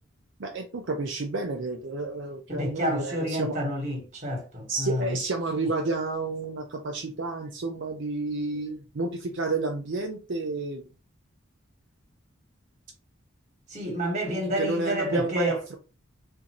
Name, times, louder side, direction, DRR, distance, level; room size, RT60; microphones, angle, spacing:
voice 1, 0.4-3.6 4.7-10.9 14.6-15.8, right 3 dB, 60° right, 0.5 m, -30 dB
voice 2, 2.5-5.2 13.7-15.6, equal, 35° right, 1.4 m, -29 dB
3.8 x 2.6 x 2.9 m
head